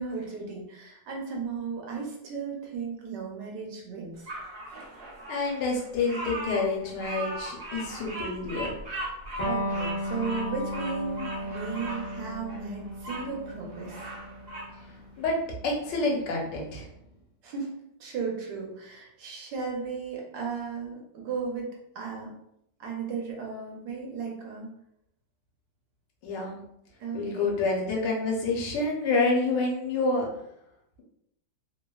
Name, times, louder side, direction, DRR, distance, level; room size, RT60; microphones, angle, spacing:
voice 1, 0.0-4.3 9.4-14.0 17.4-17.7 18.0-22.3 22.8-24.7 27.0-27.5, right 5 dB, 75° right, -1 dB, 1.3 m, -35 dB
Bird vocalization bird call bird song, 4.3-13.3 13.7-14.7, right 1 dB, 55° right, 0.7 m, -38 dB
voice 2, 5.3-8.7 15.2-15.4 15.6-16.9 26.2-26.6 27.1-30.3, left 3 dB, 75° left, -1 dB, 1.3 m, -28 dB
Electric guitar, 9.4-16.5, equal, 50° left, 0.5 m, -35 dB
3.2 x 2.1 x 2.2 m, 0.77 s
omnidirectional pair, 1.9 m